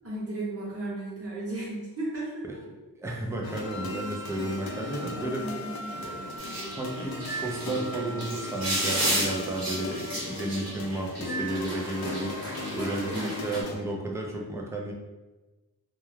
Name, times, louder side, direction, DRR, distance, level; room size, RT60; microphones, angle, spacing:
voice 1, 0.0-2.6 5.2-5.9 12.7-13.7, right 2 dB, 35° right, -6 dB, 1.0 m, -35 dB
voice 2, 3.0-5.5 6.0-6.5 6.7-14.9, right 2 dB, 10° right, -1 dB, 0.4 m, -33 dB
sound 1, 3.4-13.8, left 3 dB, 70° left, 0.5 m, -38 dB
Wind instrument woodwind instrument, 3.6-10.2, equal, 30° left, 0.7 m, -43 dB
sound 2, 6.4-13.6, right 1 dB, 60° right, 1.0 m, -33 dB
2.3 x 2.1 x 3.1 m, 1.2 s
wide cardioid pair, 95°, 38 cm